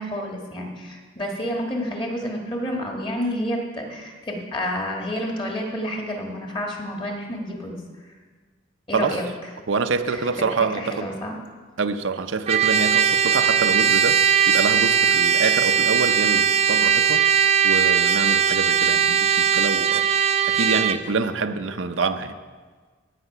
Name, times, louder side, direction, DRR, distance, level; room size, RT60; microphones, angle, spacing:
voice 1, 0.0-7.8 8.9-9.2 10.1-10.3 10.8-11.3, equal, 25° left, 1 dB, 1.6 m, -29 dB
voice 2, 9.7-11.1 11.8-17.2 17.6-20.0 20.5-22.4, right 4 dB, 85° right, 8 dB, 0.6 m, -26 dB
Trumpet, 12.5-21.0, right 8 dB, 30° right, 0.4 m, -19 dB
16.0 x 5.8 x 5.7 m, 1.4 s
head